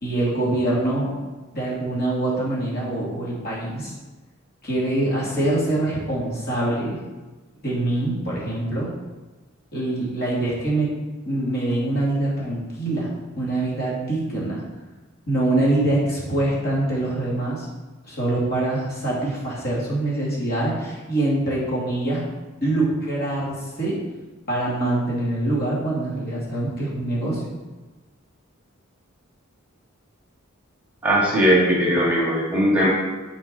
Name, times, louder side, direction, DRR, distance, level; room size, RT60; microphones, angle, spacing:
voice 1, 0.0-1.1 1.5-4.0 4.6-7.0 7.6-8.9 9.7-10.9 11.2-13.1 13.4-14.6 15.3-17.7 18.0-22.2 22.6-24.0 24.5-27.6, right 2 dB, 50° left, -6 dB, 2.4 m, -24 dB
voice 2, 31.0-32.9, equal, 5° right, -6 dB, 1.8 m, -19 dB
9.6 x 4.5 x 4.3 m, 1.2 s
head